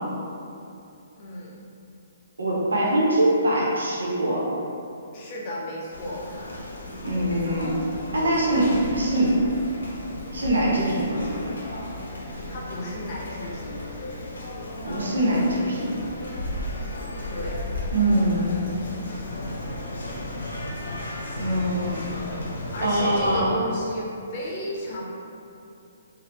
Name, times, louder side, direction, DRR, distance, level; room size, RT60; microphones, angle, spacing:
voice 1, 1.2-1.6 5.1-6.3 12.5-13.8 17.3-17.6 22.7-25.0, equal, 40° left, -5 dB, 0.7 m, -33 dB
voice 2, 2.4-4.4 7.0-7.8 8.1-9.4 10.3-11.3 14.8-16.0 17.9-18.7 21.4-22.0 22.8-23.5, right 1 dB, 85° right, -4 dB, 0.7 m, -23 dB
sound 1, 5.9-23.4, left 1 dB, 80° left, 0.6 m, -34 dB
3.2 x 2.1 x 2.9 m, 2.7 s
hypercardioid pair, 140°, 0 cm